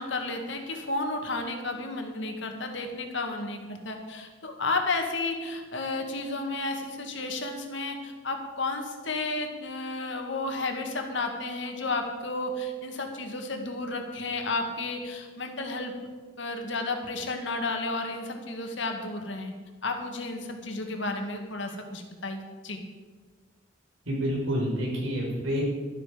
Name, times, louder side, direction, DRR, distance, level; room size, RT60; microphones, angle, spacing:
voice 1, 0.0-15.9 16.4-19.5 19.8-22.8, left 2 dB, 65° left, 4 dB, 1.9 m, -32 dB
voice 2, 24.0-25.6, equal, 90° right, -2 dB, 4.9 m, -28 dB
12.0 x 12.0 x 5.1 m, 1.5 s
head